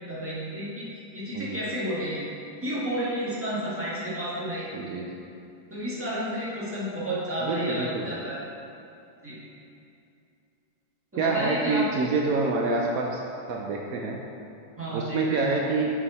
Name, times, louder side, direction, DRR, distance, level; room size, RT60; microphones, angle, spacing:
voice 1, 0.1-0.9 1.1-2.2 2.6-4.7 5.7-8.4 9.2-9.4 11.1-11.9 14.8-15.5, right 1 dB, 5° right, -8 dB, 1.3 m, -31 dB
voice 2, 4.7-5.1 7.4-8.0 11.2-13.2 13.5-14.2 14.9-15.9, right 3 dB, 85° right, -1 dB, 0.7 m, -27 dB
7.0 x 5.2 x 4.1 m, 2.7 s
omnidirectional pair, 2.2 m